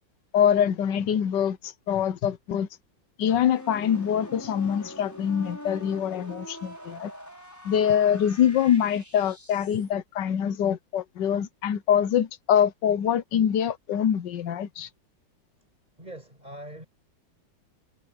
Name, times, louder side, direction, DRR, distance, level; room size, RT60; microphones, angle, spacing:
voice 1, 0.3-2.7 3.2-7.1 7.6-14.9, left 9 dB, 70° left, 1.4 m, -24 dB
sound 1, 3.2-9.9, equal, 10° left, 6.0 m, -43 dB
voice 2, 16.0-16.9, right 1 dB, 20° right, 6.0 m, -42 dB
omnidirectional pair, 2.1 m